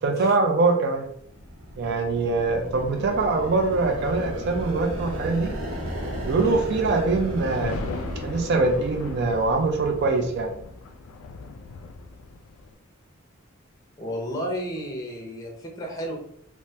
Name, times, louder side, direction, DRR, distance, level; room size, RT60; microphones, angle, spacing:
voice 1, 0.0-1.1 1.8-5.5 6.2-7.8 8.2-10.5, right 3 dB, 55° right, 4 dB, 0.4 m, -23 dB
sound 1, 1.2-10.9, equal, 80° right, 0.8 m, -35 dB
sound 2, 7.3-12.7, left 3 dB, 90° left, 0.3 m, -38 dB
voice 2, 14.0-16.2, equal, 15° left, -1 dB, 0.6 m, -32 dB
3.2 x 2.1 x 2.7 m, 0.70 s
head